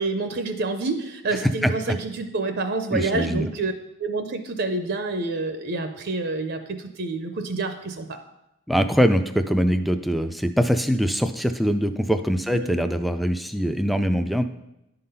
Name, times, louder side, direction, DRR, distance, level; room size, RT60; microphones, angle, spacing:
voice 1, 0.0-3.7 4.0-8.2 12.5-12.7, right 3 dB, 50° right, 7 dB, 0.5 m, -28 dB
voice 2, 1.4-2.0 2.9-3.5 8.7-14.4, equal, ahead, 7 dB, 0.3 m, -23 dB
10.5 x 3.8 x 5.5 m, 0.89 s
head